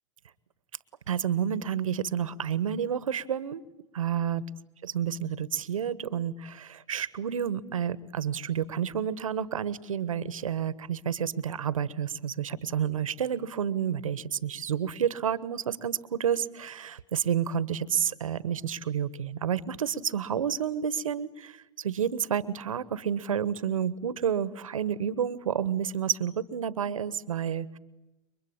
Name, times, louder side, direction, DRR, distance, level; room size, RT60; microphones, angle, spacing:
voice 1, 1.1-3.6 3.9-4.4 4.8-27.8, right 8 dB, 90° right, 17 dB, 1.2 m, -30 dB
29.5 x 23.0 x 8.8 m, 1.0 s
hypercardioid pair, 110°, 17 cm